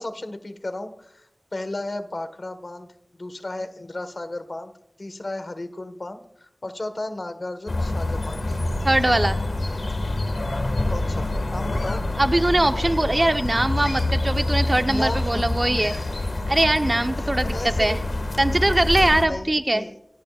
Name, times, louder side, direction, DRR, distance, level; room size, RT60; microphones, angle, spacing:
voice 1, 0.0-2.9 3.2-4.7 5.0-8.4 10.9-12.0 14.9-15.4 15.7-15.8 17.2-18.0 19.2-19.9, left 2 dB, 60° left, 9 dB, 1.6 m, -34 dB
sound 1, 7.7-19.3, left 2 dB, 85° left, 1.9 m, -26 dB
voice 2, 8.8-9.4 12.2-15.9 16.5-18.0 18.4-19.8, right 1 dB, 40° right, 6 dB, 1.1 m, -21 dB
27.0 x 17.5 x 2.5 m, 0.77 s
wide cardioid pair, 60°, 0 cm